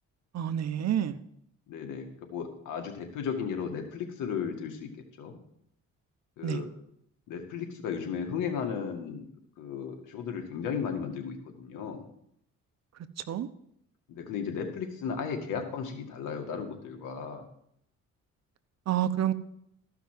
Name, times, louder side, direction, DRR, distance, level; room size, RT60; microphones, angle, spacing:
voice 1, 0.3-1.2 6.4-6.6 13.3-13.5 18.9-19.3, right 10 dB, 60° right, 11 dB, 1.0 m, -28 dB
voice 2, 1.7-4.9 5.2-5.4 6.4-6.7 7.3-9.3 9.6-12.0 14.1-17.4, left 6 dB, 90° left, 4 dB, 2.1 m, -35 dB
14.0 x 5.9 x 7.4 m, 0.71 s
cardioid pair, 90°, 30 cm